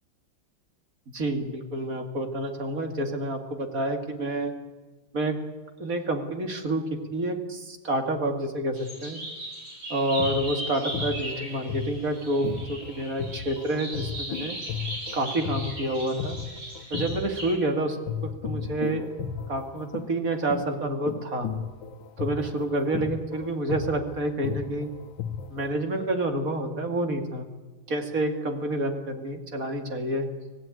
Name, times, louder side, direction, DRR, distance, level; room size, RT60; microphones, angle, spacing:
voice 1, 1.1-4.5 5.1-5.4 5.8-9.2 9.9-14.6 15.1-16.4 16.9-19.1 19.5-21.5 22.2-24.9 25.5-27.5 27.9-30.3, right 1 dB, 45° right, 5 dB, 2.7 m, -28 dB
sound 1, 8.7-17.5, right 1 dB, 80° right, 9.0 m, -38 dB
sound 2, 10.0-17.7 18.1-25.7, left 7 dB, 80° left, 1.8 m, -35 dB
25.5 x 17.5 x 9.2 m, 1.3 s
omnidirectional pair, 2.1 m